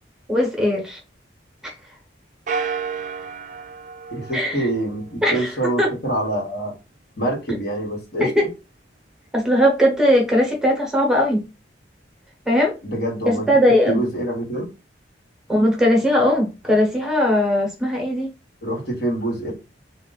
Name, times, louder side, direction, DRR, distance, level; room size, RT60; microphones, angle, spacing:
voice 1, 0.3-1.0 1.6-1.7 4.3-4.7 5.2-5.9 8.2-8.5 9.3-11.4 12.5-12.8 13.3-14.0 15.5-18.3, equal, 5° right, 1.0 m, -19 dB
sound 1, 2.5-5.2, right 6 dB, 45° right, 0.4 m, -31 dB
voice 2, 4.1-6.7 7.2-8.3 12.8-13.5 13.9-14.7 18.6-19.5, right 1 dB, 60° left, 1.3 m, -25 dB
3.8 x 2.4 x 3.9 m
head